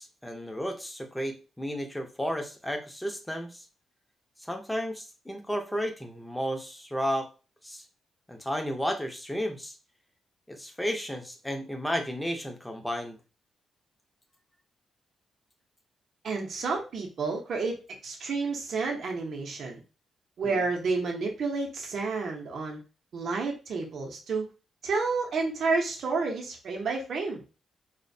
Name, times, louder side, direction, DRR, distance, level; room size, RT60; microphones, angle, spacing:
voice 1, 0.0-3.7 4.4-7.3 7.6-7.8 8.3-9.8 10.5-13.2 20.4-20.6, equal, 5° left, 4 dB, 0.5 m, -33 dB
voice 2, 16.2-19.8 20.4-22.8 23.1-24.5 24.8-27.4, right 4 dB, 60° right, 1 dB, 0.6 m, -30 dB
2.5 x 2.1 x 2.5 m, 0.32 s
cardioid pair, 110°, 0 cm